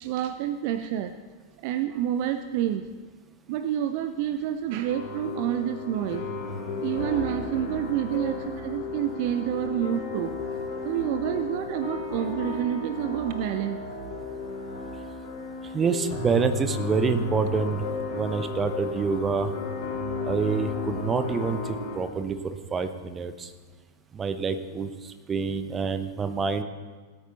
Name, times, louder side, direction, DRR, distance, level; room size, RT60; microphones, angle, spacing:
voice 1, 0.0-1.1 1.6-2.9 3.5-6.3 6.8-10.4 10.8-13.8, right 11 dB, 45° right, 11 dB, 0.5 m, -28 dB
sound 1, 4.8-22.0, left 4 dB, 50° left, 3.8 m, -34 dB
voice 2, 15.7-17.8 18.1-19.5 20.3-23.5 24.1-24.9 25.3-26.6, right 5 dB, 20° right, 10 dB, 0.8 m, -27 dB
17.5 x 8.5 x 4.0 m, 1.5 s
figure-of-eight pair, 90°, 0 cm